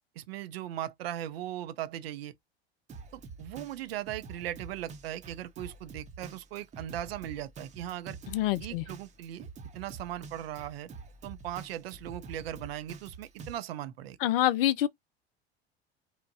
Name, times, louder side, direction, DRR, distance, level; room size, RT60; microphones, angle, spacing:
voice 1, 0.2-2.3 3.1-8.2 8.6-9.5 9.7-10.9 11.2-14.2, right 12 dB, 65° right, 0.5 m, -38 dB
Drum kit, 2.9-13.5, right 4 dB, 20° right, 0.7 m, -47 dB
voice 2, 8.3-8.8 14.2-14.9, left 14 dB, 60° left, 0.4 m, -26 dB
2.9 x 2.1 x 2.5 m
figure-of-eight pair, 75°, 32 cm